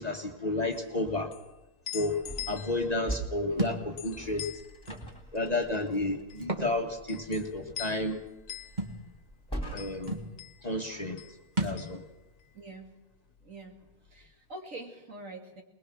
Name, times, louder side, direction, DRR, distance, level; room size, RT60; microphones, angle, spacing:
voice 1, 0.0-1.3 1.9-2.2 2.5-4.5 5.3-8.2 9.7-10.2 10.6-11.2 11.6-12.0, left 2 dB, 30° left, 2 dB, 1.6 m, -31 dB
sound 1, 0.6-12.9 13.2-14.2, left 11 dB, 80° left, 1.5 m, -45 dB
sound 2, 2.2-10.3, right 1 dB, 5° left, 3.6 m, -43 dB
Thump thud, 3.6-3.8 4.9-5.0 6.4-6.7 7.1-7.2 8.8-9.0 9.8-9.9 10.1-10.3 11.6-11.9, right 2 dB, 30° right, 2.1 m, -32 dB
voice 2, 12.5-13.0 13.4-15.6, right 2 dB, 60° right, 2 dB, 2.8 m, -45 dB
21.5 x 21.0 x 6.2 m, 1.0 s
omnidirectional pair, 1.5 m